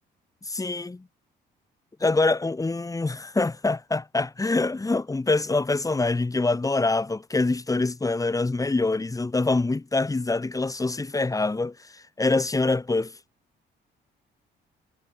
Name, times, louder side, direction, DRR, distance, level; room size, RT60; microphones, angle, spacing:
voice 1, 0.5-1.0 2.0-11.7 12.2-13.1, left 3 dB, 15° left, 1.5 m, -25 dB
cardioid pair, 90°, 20 cm